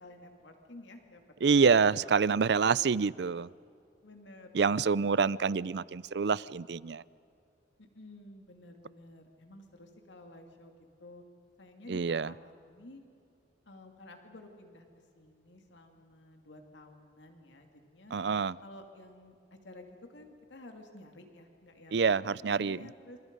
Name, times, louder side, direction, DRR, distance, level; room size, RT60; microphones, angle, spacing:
voice 1, 0.0-2.5 4.0-5.2 7.8-11.2 11.6-13.0 13.7-18.1 18.6-23.2, left 1 dB, 85° left, 2.5 m, -52 dB
voice 2, 1.4-3.5 4.5-7.0 11.9-12.3 18.1-18.6 21.9-22.9, right 5 dB, 70° right, 0.5 m, -27 dB
27.5 x 26.5 x 5.4 m
head